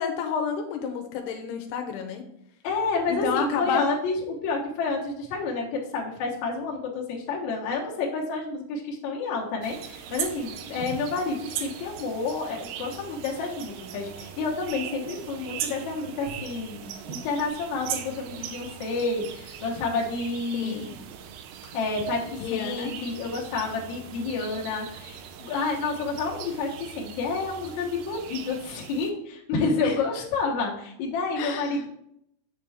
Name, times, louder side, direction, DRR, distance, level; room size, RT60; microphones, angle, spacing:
voice 1, 0.0-2.2 3.1-3.9 20.5-20.9 22.4-22.9 29.8-30.0 31.4-31.9, left 6 dB, 85° left, 5 dB, 2.7 m, -30 dB
voice 2, 2.6-21.1 21.7-31.9, left 4 dB, 60° left, -2 dB, 2.2 m, -29 dB
sound 1, 9.6-29.1, right 9 dB, 80° right, 2.2 m, -39 dB
6.8 x 6.6 x 3.5 m, 0.74 s
omnidirectional pair, 4.6 m